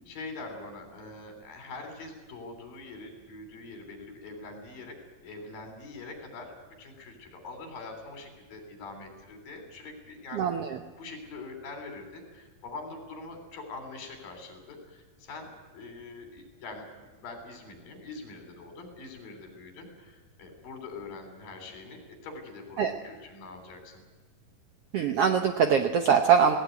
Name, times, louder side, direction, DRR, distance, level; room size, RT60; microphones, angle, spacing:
voice 1, 0.1-5.0 5.2-10.5 11.0-16.9 17.2-24.0, left 3 dB, 85° left, 5 dB, 5.2 m, -44 dB
voice 2, 10.3-10.8 22.8-22.9 24.9-26.6, right 7 dB, 70° right, 6 dB, 1.4 m, -23 dB
19.0 x 18.0 x 9.4 m, 1.3 s
omnidirectional pair, 3.9 m